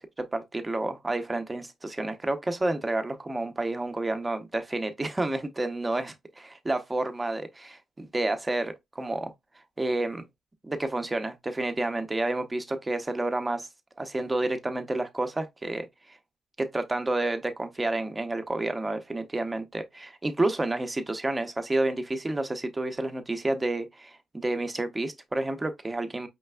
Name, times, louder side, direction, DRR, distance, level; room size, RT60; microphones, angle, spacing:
voice 1, 0.0-9.3 9.8-10.3 10.6-13.7 14.0-16.2 16.6-26.3, right 2 dB, 15° right, 0.6 m, -30 dB
5.1 x 3.2 x 2.2 m
cardioid pair, 115°, 0 cm